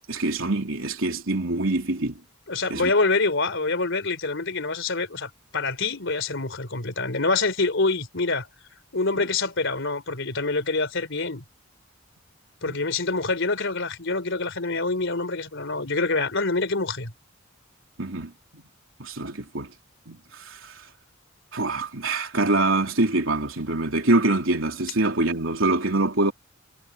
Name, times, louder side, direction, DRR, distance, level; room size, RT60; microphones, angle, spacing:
voice 1, 0.1-2.2 2.7-2.9 9.2-9.3 12.7-12.8 18.0-18.3 19.0-19.7 20.1-20.2 20.5-20.7 21.5-26.3, right 2 dB, 75° right, 3.6 m, -24 dB
voice 2, 2.5-8.5 8.9-11.4 12.6-17.1, left 3 dB, 65° left, 4.1 m, -26 dB
head